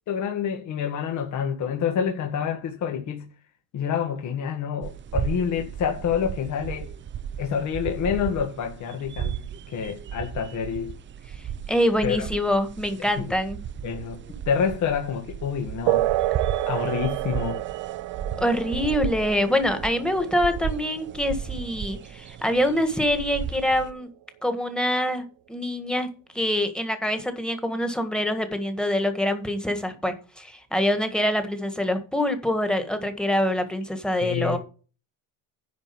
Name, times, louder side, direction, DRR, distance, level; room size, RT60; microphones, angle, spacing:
voice 1, 0.1-3.3 3.7-6.9 7.4-9.4 9.7-10.9 12.0-12.3 13.2-13.3 13.8-14.2 14.4-16.1 16.7-17.6 34.2-34.6, left 7 dB, 55° left, 1.7 m, -27 dB
sound 1, 4.8-23.9, right 8 dB, 35° right, 0.6 m, -35 dB
voice 2, 11.7-13.6 14.3-14.4 18.4-24.1 24.4-26.1 26.4-34.6, left 1 dB, ahead, 1.7 m, -25 dB
sound 2, 15.9-23.9, right 16 dB, 80° right, 0.6 m, -30 dB
10.5 x 4.5 x 7.1 m
cardioid pair, 125°, 35 cm